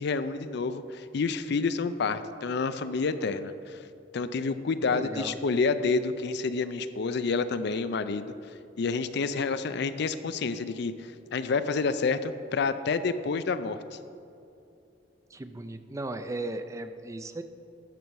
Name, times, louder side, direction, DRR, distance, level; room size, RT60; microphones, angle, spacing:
voice 1, 0.0-3.8 4.1-8.3 8.8-13.8, left 4 dB, 65° left, 12 dB, 0.4 m, -29 dB
voice 2, 4.9-5.3 15.3-17.4, right 2 dB, 15° right, 9 dB, 0.4 m, -36 dB
12.0 x 7.4 x 4.7 m, 2.6 s
head